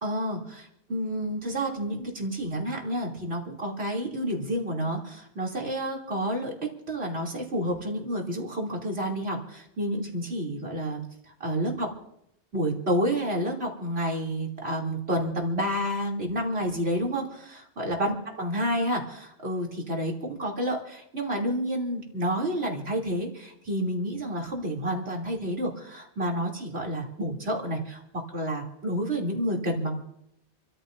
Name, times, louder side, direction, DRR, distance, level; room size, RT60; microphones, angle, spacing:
voice 1, 0.0-6.5 6.9-11.9 12.5-28.0 28.3-30.0, equal, 70° right, -2 dB, 3.5 m, -29 dB
29.0 x 14.0 x 2.7 m, 0.77 s
omnidirectional pair, 1.1 m